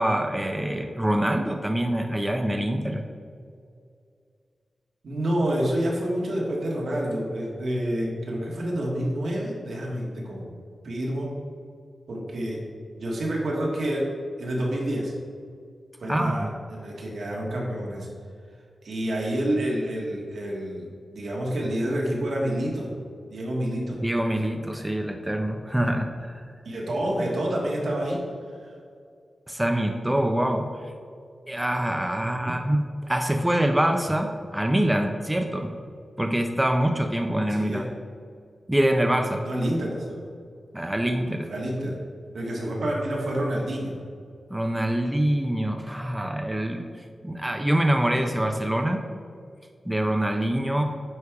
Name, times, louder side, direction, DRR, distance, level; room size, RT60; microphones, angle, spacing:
voice 1, 0.0-3.0 16.1-16.5 24.0-26.5 29.5-30.7 31.5-35.7 36.2-37.9 38.7-39.4 40.7-41.5 44.5-46.9 47.2-49.0 49.9-50.8, right 1 dB, 10° right, 4 dB, 0.5 m, -25 dB
voice 2, 5.0-10.5 10.8-11.3 12.1-12.6 13.0-14.1 14.4-15.1 16.0-18.1 18.8-22.9 23.3-24.0 26.6-28.2 32.2-32.6 37.5-37.9 39.4-40.3 41.5-42.0 42.3-43.9, right 1 dB, 75° right, -3 dB, 1.6 m, -28 dB
9.6 x 3.4 x 4.7 m, 2.3 s
wide cardioid pair, 100°, 0 cm